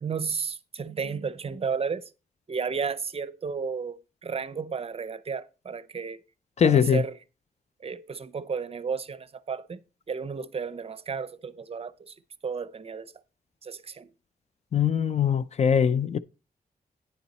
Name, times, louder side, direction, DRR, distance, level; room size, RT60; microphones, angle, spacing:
voice 1, 0.0-2.0 2.5-6.2 6.6-7.2 7.8-12.1 12.4-13.1 13.6-14.1, right 5 dB, 40° right, 0.5 m, -33 dB
voice 2, 6.6-7.0 14.7-16.2, left 8 dB, 45° left, 0.4 m, -22 dB
9.9 x 7.0 x 4.2 m
wide cardioid pair, 130°, 15 cm